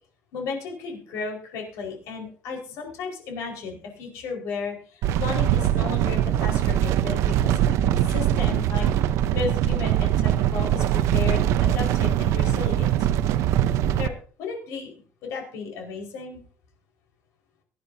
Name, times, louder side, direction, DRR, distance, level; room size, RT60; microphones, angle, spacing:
voice 1, 0.3-7.6 7.9-12.9 13.9-14.1 14.4-14.9 15.2-16.4, left 5 dB, 80° left, 1 dB, 4.8 m, -34 dB
sound 1, 5.0-14.1, right 11 dB, 75° right, 0.8 m, -22 dB
23.0 x 10.5 x 2.7 m, 0.43 s
cardioid pair, 160°, 5 cm